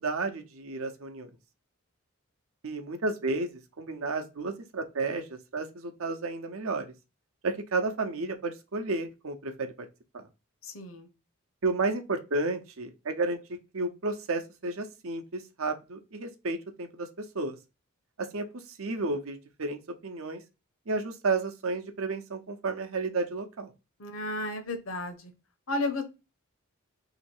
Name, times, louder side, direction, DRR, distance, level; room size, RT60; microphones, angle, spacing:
voice 1, 0.0-1.3 2.6-6.9 7.4-9.7 10.1-10.3 11.6-13.4 13.7-17.6 18.2-18.5 18.8-20.4 20.9-23.7, right 3 dB, 70° right, 0.7 m, -32 dB
voice 2, 10.6-11.1 24.0-25.3 25.7-26.0, left 2 dB, 65° left, 0.9 m, -33 dB
3.1 x 2.9 x 4.3 m
head